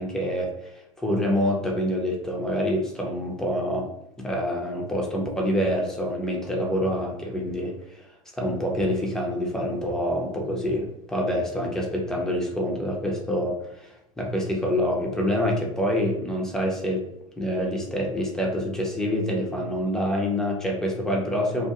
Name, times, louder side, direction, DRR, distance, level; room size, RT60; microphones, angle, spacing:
voice 1, 0.0-3.9 4.2-8.0 8.4-17.0 17.4-21.7, equal, 5° left, 0 dB, 0.7 m, -26 dB
2.4 x 2.2 x 2.9 m, 0.79 s
hypercardioid pair, 90°, 17 cm